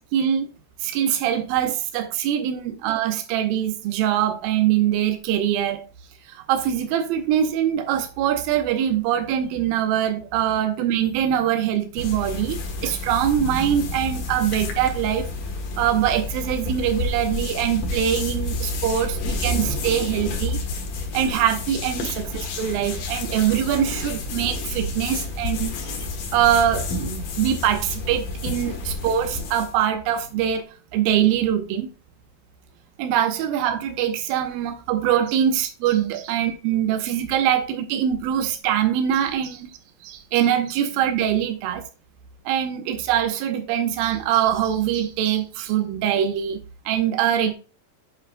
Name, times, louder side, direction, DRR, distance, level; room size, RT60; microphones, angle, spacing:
voice 1, 0.1-0.5 0.8-5.9 6.3-15.3 15.8-20.6 21.1-25.7 26.3-30.6 30.9-31.9 33.0-39.7 40.0-41.8 42.5-46.6 46.9-47.5, right 10 dB, 85° right, 2.6 m, -23 dB
sound 1, 12.0-29.8, left 3 dB, 65° left, 3.1 m, -30 dB
8.6 x 8.4 x 2.2 m
omnidirectional pair, 4.1 m